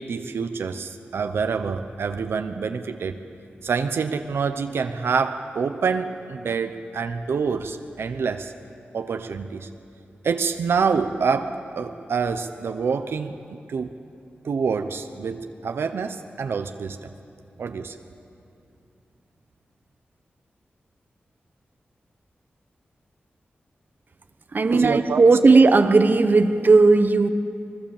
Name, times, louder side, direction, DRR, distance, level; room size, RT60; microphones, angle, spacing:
voice 1, 0.0-3.2 3.6-8.5 8.9-9.7 10.2-14.0 14.4-17.1 17.6-18.0 24.7-25.2, right 5 dB, 85° right, 0.9 m, -26 dB
voice 2, 24.5-27.3, right 3 dB, 55° right, 1.1 m, -16 dB
23.5 x 22.5 x 7.2 m
cardioid pair, 65°, 4 cm